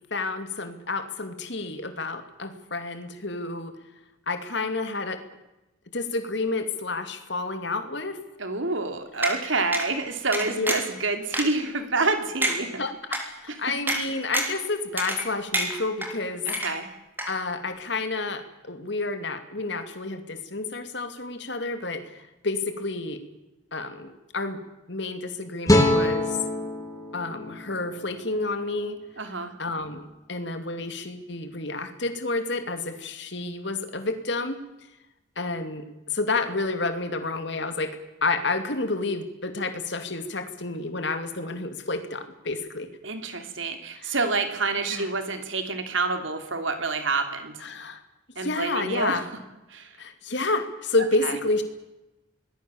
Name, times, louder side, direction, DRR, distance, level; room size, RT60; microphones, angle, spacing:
voice 1, 0.1-3.7 4.3-5.2 5.9-8.2 9.4-9.5 10.4-10.7 12.8-16.5 17.3-23.2 23.7-24.6 24.9-26.4 27.1-29.0 29.6-34.6 35.4-42.9 44.0-44.1 44.9-45.1 47.6-48.0 48.4-49.3 50.0-51.6, left 3 dB, 60° left, 8 dB, 2.6 m, -30 dB
voice 2, 8.4-12.7 16.5-16.9 29.2-29.5 43.0-47.6 48.4-49.2 49.7-49.9 51.2-51.3, right 3 dB, 70° right, 7 dB, 3.0 m, -28 dB
sound 1, 9.2-9.4 9.7-9.9 10.3-10.9 11.3-11.4 12.0-12.1 12.4-12.6 13.1-13.2 13.9-14.0 14.3-14.6 15.0-15.3 15.5-16.1 16.5-16.9 17.2-17.3, right 1 dB, 10° right, 3.4 m, -27 dB
sound 2, 25.7-28.9, left 1 dB, 15° left, 3.2 m, -25 dB
26.0 x 20.0 x 7.2 m, 0.98 s
head